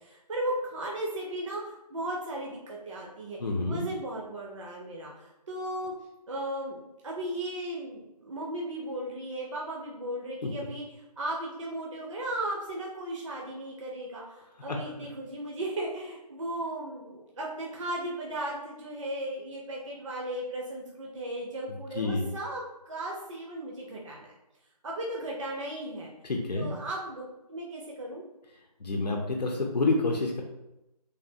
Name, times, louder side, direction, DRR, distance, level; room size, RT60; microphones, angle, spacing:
voice 1, 0.0-3.4 3.7-5.9 6.3-10.8 11.2-24.3 24.8-26.1 26.5-27.2 27.5-28.2, right 1 dB, 50° right, -2 dB, 0.6 m, -36 dB
voice 2, 3.4-3.8 10.4-10.5 14.7-14.8 21.9-22.3 26.2-26.7 28.8-30.4, left 2 dB, 80° left, 2 dB, 0.6 m, -28 dB
3.3 x 2.3 x 2.7 m, 0.94 s
figure-of-eight pair, 160°, 21 cm